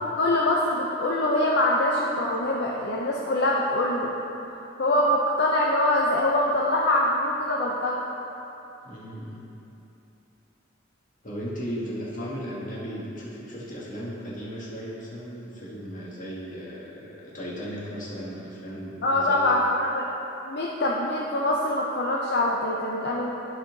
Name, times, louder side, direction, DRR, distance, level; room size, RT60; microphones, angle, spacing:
voice 1, 0.1-4.1 4.4-8.0 19.0-20.1 20.5-23.3, left 1 dB, 60° left, -4 dB, 0.7 m, -24 dB
voice 2, 8.8-9.4 11.2-19.4, equal, 45° left, -6 dB, 1.7 m, -36 dB
12.0 x 4.2 x 4.0 m, 2.9 s
head